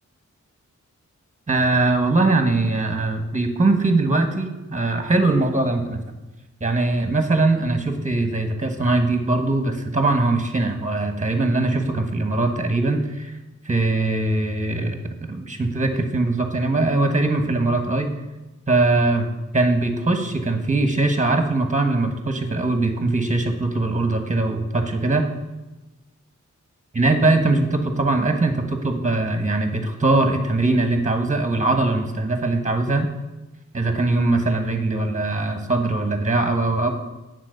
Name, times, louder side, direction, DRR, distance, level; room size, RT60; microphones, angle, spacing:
voice 1, 1.5-6.0 6.6-13.3 13.6-15.0 15.2-18.1 18.7-25.3 26.9-33.1 33.7-36.9, right 2 dB, 25° right, 6 dB, 1.2 m, -21 dB
9.1 x 4.2 x 6.4 m, 1.1 s
wide cardioid pair, 80°, 30 cm